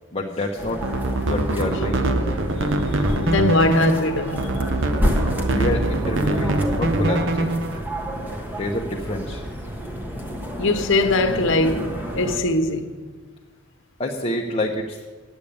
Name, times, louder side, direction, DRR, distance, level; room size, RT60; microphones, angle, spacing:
voice 1, 0.1-0.8 1.2-2.1 5.5-7.5 8.5-9.4 14.0-15.0, left 1 dB, 30° left, 0.9 m, -27 dB
sound 1, 0.6-12.4, equal, 10° right, 1.2 m, -30 dB
sound 2, 0.7-7.8, right 1 dB, 60° right, 0.9 m, -23 dB
voice 2, 3.2-4.6 10.6-11.9 12.1-12.9, left 2 dB, 60° left, 1.1 m, -21 dB
10.0 x 8.4 x 8.5 m
head